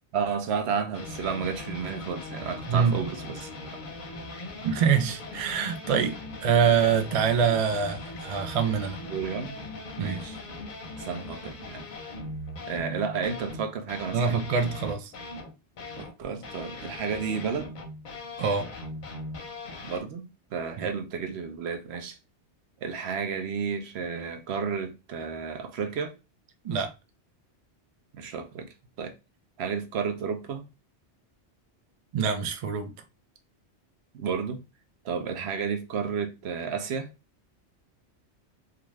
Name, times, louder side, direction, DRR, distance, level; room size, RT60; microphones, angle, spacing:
voice 1, 0.1-3.5 9.0-9.7 10.0-10.4 11.1-11.8 12.7-14.4 16.0-17.7 19.8-20.2 20.5-22.2 22.8-26.1 28.1-29.1 29.6-30.7 34.1-34.6 35.0-37.1, right 6 dB, 70° right, 0.8 m, -32 dB
sound 1, 0.9-16.1 16.4-20.0, left 2 dB, 50° left, 0.7 m, -40 dB
voice 2, 4.6-9.0 10.0-10.2 14.1-15.1 18.4-18.7 26.6-26.9 32.1-32.9, right 6 dB, 55° right, 0.4 m, -25 dB
2.5 x 2.4 x 3.1 m
omnidirectional pair, 1.2 m